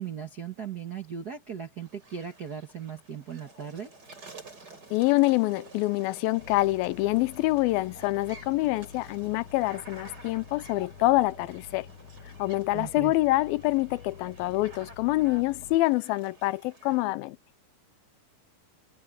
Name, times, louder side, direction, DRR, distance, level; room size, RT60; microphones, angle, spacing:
voice 1, 0.0-3.9 12.7-13.1, right 8 dB, 70° right, 0.9 m, -38 dB
sound 1, 1.8-17.0, right 2 dB, 25° right, 5.5 m, -51 dB
voice 2, 4.9-11.9 12.4-17.4, left 19 dB, 85° left, 2.4 m, -26 dB
sound 2, 6.4-15.8, left 6 dB, 60° left, 2.9 m, -48 dB
omnidirectional pair, 4.3 m